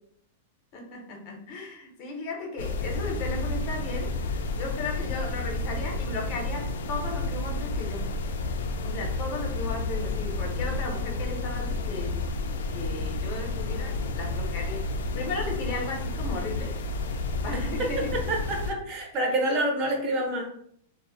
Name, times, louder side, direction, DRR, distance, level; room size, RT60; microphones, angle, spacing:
voice 1, 0.7-8.2 8.8-12.2 12.7-16.8 17.4-18.2, left 2 dB, 40° left, 1 dB, 0.7 m, -35 dB
sound 1, 2.6-18.7, left 2 dB, 85° left, 0.3 m, -31 dB
voice 2, 17.5-20.6, right 1 dB, 30° right, 1 dB, 0.5 m, -28 dB
2.1 x 2.0 x 3.7 m, 0.67 s
supercardioid pair, 160°, 0 cm